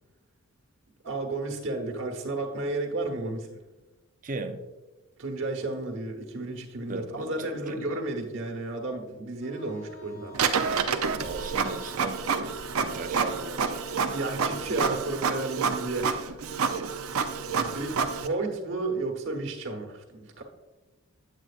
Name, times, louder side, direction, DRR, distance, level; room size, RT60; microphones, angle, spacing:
voice 1, 1.0-3.6 5.2-10.5 14.1-16.4 17.5-20.4, right 2 dB, 60° right, 2 dB, 1.3 m, -32 dB
voice 2, 4.2-4.7 6.9-7.9 11.2-12.2 12.7-13.9 17.9-18.0, right 3 dB, 40° right, 6 dB, 0.6 m, -37 dB
Wind instrument woodwind instrument, 9.4-15.2, left 4 dB, 60° left, 2.1 m, -51 dB
Printer, 10.3-18.3, right 5 dB, 85° right, 0.6 m, -28 dB
9.0 x 7.7 x 2.5 m, 1.1 s
head